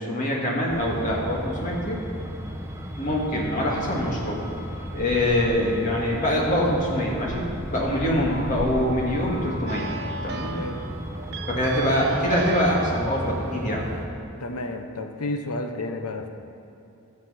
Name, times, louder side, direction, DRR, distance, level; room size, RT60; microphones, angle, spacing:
voice 1, 0.0-2.0 3.0-4.4 4.9-7.4 7.7-9.9 10.2-10.5 11.5-13.8, left 1 dB, 35° left, -3 dB, 2.2 m, -24 dB
Truck, 0.7-14.1, equal, 10° right, 0.8 m, -34 dB
sound 1, 8.3-10.3, left 3 dB, 20° left, 1.8 m, -43 dB
sound 2, 9.7-14.7, right 4 dB, 45° right, 0.5 m, -37 dB
voice 2, 14.4-16.3, left 2 dB, 85° left, 6 dB, 1.0 m, -31 dB
13.5 x 7.6 x 5.8 m, 2.8 s
head